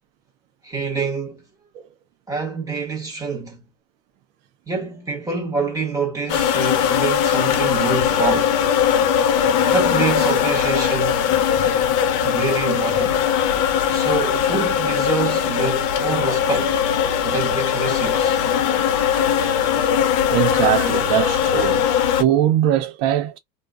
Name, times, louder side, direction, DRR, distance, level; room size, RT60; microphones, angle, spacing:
voice 1, 0.6-1.4 2.3-3.6 4.7-8.6 9.6-11.2 12.2-13.3 13.9-16.8 17.2-18.4, right 4 dB, 5° right, 1.2 m, -26 dB
sound 1, 6.3-22.2, left 8 dB, 45° left, 0.6 m, -20 dB
voice 2, 20.3-21.9 22.1-23.4, right 11 dB, 60° right, 0.8 m, -21 dB
2.3 x 2.3 x 2.4 m
supercardioid pair, 130°, 47 cm